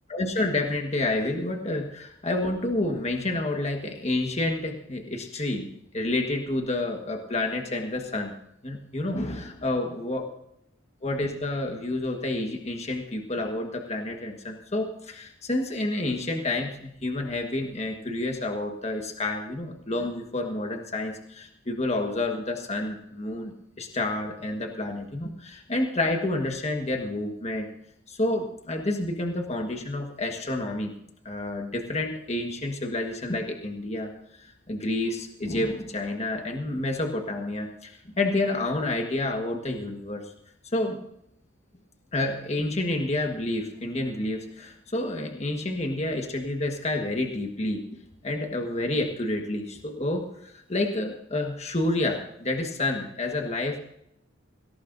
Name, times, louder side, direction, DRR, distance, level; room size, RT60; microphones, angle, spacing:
voice 1, 0.1-5.7 5.9-8.4 8.6-10.2 11.0-27.7 28.1-30.9 31.2-34.1 34.4-40.3 40.7-41.0 42.1-47.8 48.2-53.8, left 2 dB, 35° left, 3 dB, 1.5 m, -29 dB
18.0 x 18.0 x 2.7 m, 0.74 s
head